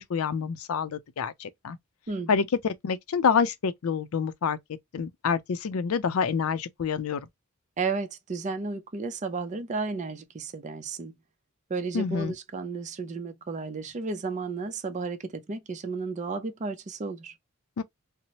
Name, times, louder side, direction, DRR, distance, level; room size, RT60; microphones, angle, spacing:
voice 1, 0.0-1.8 2.3-4.6 4.9-7.2 11.9-12.3 17.8-17.9, left 6 dB, 75° left, 0.4 m, -27 dB
voice 2, 2.1-2.4 7.8-11.1 11.7-17.3, right 4 dB, 35° right, 0.5 m, -33 dB
2.8 x 2.0 x 2.8 m
head